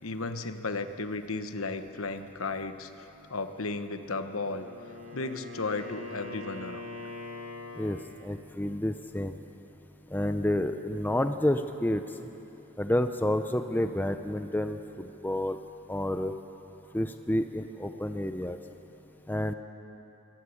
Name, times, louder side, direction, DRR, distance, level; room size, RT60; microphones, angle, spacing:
voice 1, 0.0-2.9 3.3-4.7 5.1-6.9, left 3 dB, 65° left, 9 dB, 1.1 m, -34 dB
Wind instrument woodwind instrument, 4.4-8.3, left 2 dB, 35° right, 4.0 m, -42 dB
voice 2, 8.2-9.4 10.1-12.0 12.8-14.8 15.2-15.6 15.9-16.3 16.9-18.6 19.3-19.5, left 1 dB, 10° left, 8 dB, 0.6 m, -29 dB
23.0 x 17.5 x 8.5 m, 3.0 s
head